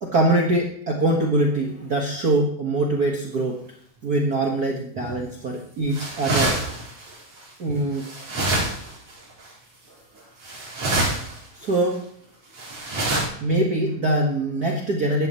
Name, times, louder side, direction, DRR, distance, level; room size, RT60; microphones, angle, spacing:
voice 1, 0.0-3.6 4.0-6.7 7.6-8.1 9.9-10.3 11.6-12.1 13.4-15.3, right 2 dB, 40° right, 0 dB, 1.7 m, -23 dB
sound 1, 5.0-5.3 5.9-7.4 7.9-9.1 9.4-9.5 10.4-11.4 11.6-11.7 12.5-13.2, right 2 dB, 65° right, 5.6 m, -26 dB
16.0 x 12.0 x 3.1 m, 0.64 s
omnidirectional pair, 3.4 m